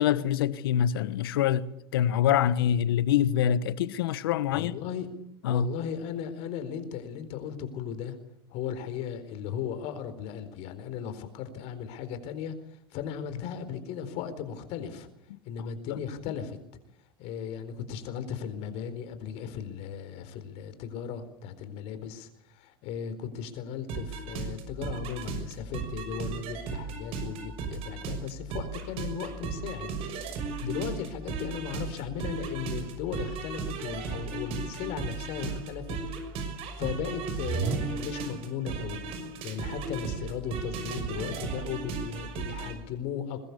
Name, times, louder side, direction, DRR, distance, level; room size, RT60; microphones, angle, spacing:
voice 1, 0.0-1.7 1.9-4.7 5.4-5.7 15.9-16.0 30.6-30.7, left 10 dB, 75° left, 1.3 m, -25 dB
voice 2, 4.5-5.1 5.5-8.2 8.5-15.1 15.4-16.6 17.2-29.9 30.3-36.0 36.7-39.0 39.4-43.4, left 8 dB, 60° left, 4.3 m, -36 dB
sound 1, 23.9-42.7, right 5 dB, 55° right, 6.1 m, -35 dB
22.5 x 20.5 x 8.3 m
hypercardioid pair, 85°, 12 cm